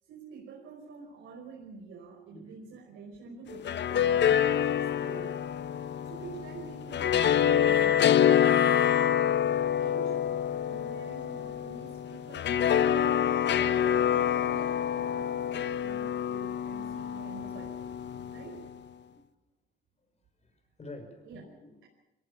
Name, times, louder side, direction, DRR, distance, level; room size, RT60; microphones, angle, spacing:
voice 1, 0.0-5.4 6.1-9.1 9.8-13.2 13.8-17.9 18.3-18.7 21.2-21.4, right 5 dB, 85° right, -2 dB, 5.1 m, -47 dB
voice 2, 2.3-2.8 3.4-4.0 19.1-19.3 20.4-21.8, left 2 dB, 35° left, 6 dB, 6.3 m, -51 dB
sound 1, 3.5-18.7, left 9 dB, 60° left, 1.0 m, -27 dB
23.0 x 18.0 x 8.6 m, 0.99 s
cardioid pair, 90°, 20 cm